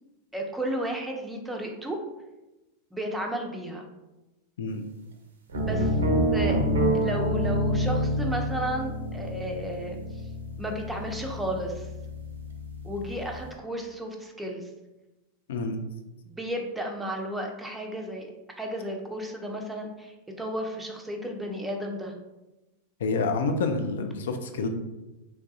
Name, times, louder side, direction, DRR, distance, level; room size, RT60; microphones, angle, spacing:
voice 1, 0.3-2.0 2.9-3.8 5.6-5.9 6.3-6.6 6.9-10.0 10.6-11.9 12.8-14.6 16.3-18.3 18.6-22.1, equal, 5° right, 1 dB, 0.4 m, -33 dB
sound 1, 5.5-13.4, equal, 65° right, 0.4 m, -28 dB
voice 2, 15.5-15.8 23.0-24.7, left 3 dB, 60° left, 6 dB, 0.3 m, -28 dB
3.1 x 2.2 x 2.6 m, 1.0 s
figure-of-eight pair, 90°, 0 cm